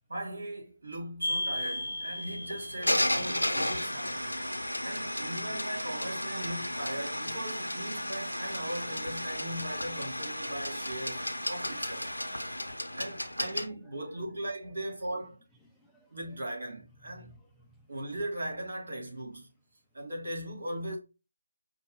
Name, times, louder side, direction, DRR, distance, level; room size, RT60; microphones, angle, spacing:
voice 1, 0.1-4.4 4.8-12.1 13.0-15.4 16.1-17.3 17.9-19.5 19.9-21.0, right 1 dB, 60° right, 1.8 m, -38 dB
sound 1, 1.2-13.7, left 1 dB, 85° left, 0.7 m, -33 dB
voice 2, 15.7-16.4 17.0-17.9, right 1 dB, ahead, 0.5 m, -61 dB
5.4 x 2.2 x 3.4 m
figure-of-eight pair, 155°, 0 cm